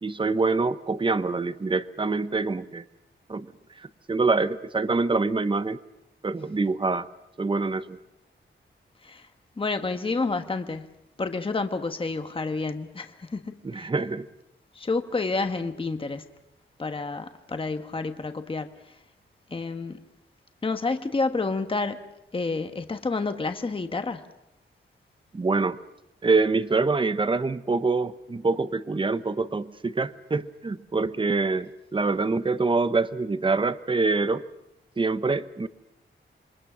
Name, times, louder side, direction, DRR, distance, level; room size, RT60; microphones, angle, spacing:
voice 1, 0.0-2.8 3.3-3.5 3.8-5.8 6.2-7.1 7.4-8.0 13.6-14.3 25.3-25.8 26.2-34.4 35.0-35.7, right 3 dB, 25° right, 0.9 m, -25 dB
voice 2, 9.6-10.9 11.2-13.9 14.7-16.2 16.8-18.7 19.5-20.0 20.6-22.0 22.3-24.2, left 3 dB, 25° left, 1.2 m, -29 dB
27.5 x 24.0 x 6.2 m
wide cardioid pair, 130°, 20 cm